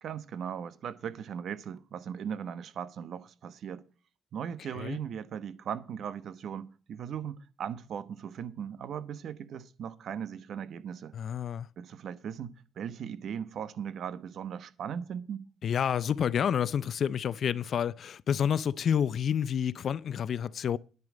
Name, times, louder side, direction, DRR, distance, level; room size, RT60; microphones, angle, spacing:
voice 1, 0.0-3.8 4.3-11.1 11.8-15.4, right 8 dB, 65° right, 1.1 m, -38 dB
voice 2, 11.1-11.7 15.6-20.8, left 8 dB, 60° left, 0.5 m, -29 dB
10.5 x 9.5 x 5.0 m
cardioid pair, 90°, 0 cm